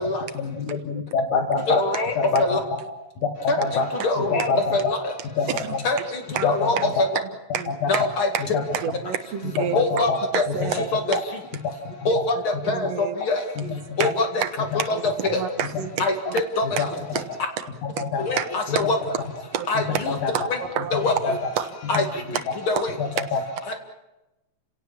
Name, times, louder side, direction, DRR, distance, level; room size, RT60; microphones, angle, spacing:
voice 1, 0.4-1.8 2.2-2.4 3.4-3.9 4.2-4.8 5.4-5.8 6.4-6.9 7.7-7.8 8.5-8.6 9.6-10.2 10.8-10.9 11.1-11.2 12.2-12.3 13.7-14.0 16.6-16.9 17.8-18.3 18.8-18.9 19.8-20.3 21.2-21.4 22.5-22.6 23.0-23.4, left 4 dB, 75° left, 3 dB, 3.4 m, -25 dB
voice 2, 1.7-2.6 3.5-5.1 5.8-7.1 7.9-8.6 9.7-11.2 12.0-14.3 14.9-15.0 15.3-15.5 16.0-17.0 18.2-19.1 19.7-20.2 20.5-20.6 20.9-21.3 21.9-22.4 22.7-22.9 23.7-23.8, left 2 dB, 45° left, 5 dB, 2.6 m, -25 dB
voice 3, 4.2-4.7 5.5-5.7 6.3-6.5 6.7-6.9 7.5-8.0 8.3-8.4 8.7-10.1 10.3-11.2 12.7-13.1 14.0-14.5 14.8-15.0 15.3-16.0 16.8-16.9 17.1-17.2 18.0-18.1 18.4-18.6 19.5-20.0 20.3-20.5 20.7-21.0 21.3-21.7 22.3-22.4, right 9 dB, 65° right, 9 dB, 2.3 m, -29 dB
29.5 x 17.5 x 7.4 m, 0.97 s
omnidirectional pair, 3.4 m